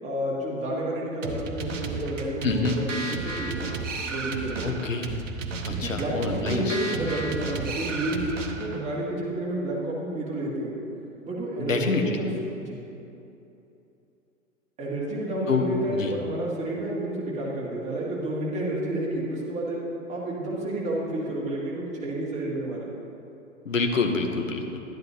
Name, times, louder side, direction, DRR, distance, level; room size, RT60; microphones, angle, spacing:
voice 1, 0.0-4.8 5.7-8.2 8.6-10.7 11.2-12.3 12.6-12.8 14.8-19.8 20.1-22.9, right 1 dB, 15° right, -5 dB, 1.9 m, -30 dB
sound 1, 1.2-8.8, right 3 dB, 65° right, 0.9 m, -33 dB
voice 2, 2.4-2.8 4.6-5.2 5.7-6.8 11.6-12.1 15.5-16.1 23.6-24.8, left 4 dB, 70° left, 4 dB, 1.1 m, -26 dB
11.5 x 10.5 x 2.9 m, 2.8 s
figure-of-eight pair, 105°, 40 cm